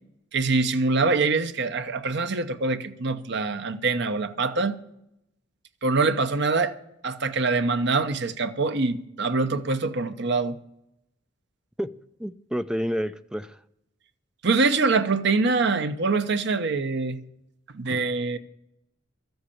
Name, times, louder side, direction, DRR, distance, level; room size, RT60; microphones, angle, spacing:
voice 1, 0.3-4.8 5.8-6.8 7.0-10.6 14.4-17.2 17.7-18.4, right 3 dB, 65° right, 0.9 m, -24 dB
voice 2, 12.2-13.6, equal, 5° right, 0.5 m, -29 dB
13.0 x 8.0 x 8.5 m
head